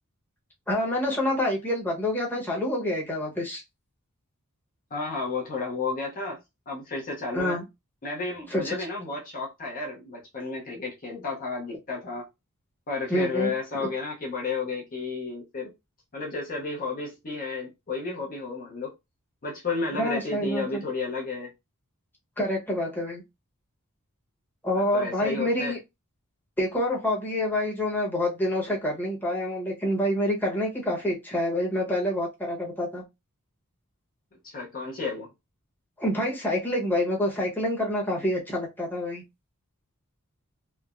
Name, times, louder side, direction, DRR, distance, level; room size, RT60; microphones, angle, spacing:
voice 1, 0.7-3.6 7.3-7.6 8.5-8.8 13.1-13.5 19.9-20.8 22.4-23.2 24.6-25.8 26.6-33.0 36.0-39.2, left 1 dB, 10° left, 0.9 m, -27 dB
voice 2, 4.9-6.4 6.7-7.6 8.0-12.3 12.9-15.7 16.1-18.9 19.4-21.5 24.7-25.7 34.4-35.3, left 3 dB, 40° left, 0.6 m, -32 dB
3.1 x 2.0 x 2.4 m
head